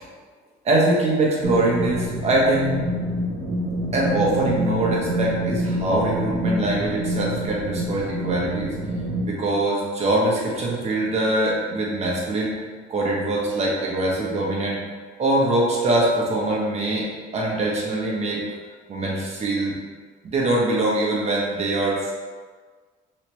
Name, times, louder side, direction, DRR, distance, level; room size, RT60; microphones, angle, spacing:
voice 1, 0.6-2.8 3.9-8.7 9.2-12.5 12.9-14.8 15.2-17.1 17.3-18.4 18.9-19.7 20.2-22.1, right 2 dB, 40° right, -3 dB, 1.0 m, -23 dB
sound 1, 1.4-9.2, right 1 dB, 85° right, 0.6 m, -27 dB
3.2 x 2.8 x 3.0 m, 1.5 s
cardioid pair, 110°, 17 cm